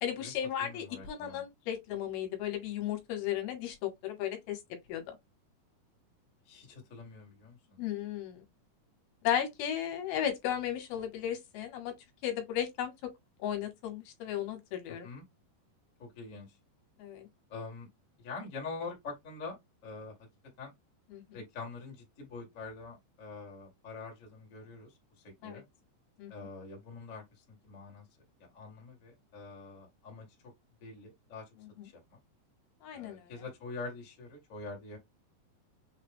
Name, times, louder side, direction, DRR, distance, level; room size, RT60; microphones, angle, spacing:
voice 1, 0.0-4.6 4.9-5.0 7.8-8.4 9.2-11.9 12.2-13.1 13.4-15.1 17.0-17.3 21.1-21.4 25.4-25.6 26.2-26.3 31.8-31.9 32.8-33.3, left 10 dB, 70° left, 2.7 m, -35 dB
voice 2, 0.6-1.4 6.4-7.8 15.0-15.2 16.0-16.6 17.5-17.9 18.2-19.6 19.8-20.1 20.6-20.7 21.3-24.9 25.2-25.6 26.3-27.2 27.6-28.0 28.4-30.5 30.8-31.4 31.8-32.2 32.9-35.0, left 4 dB, 50° left, 0.9 m, -45 dB
6.3 x 2.2 x 3.4 m
omnidirectional pair, 4.8 m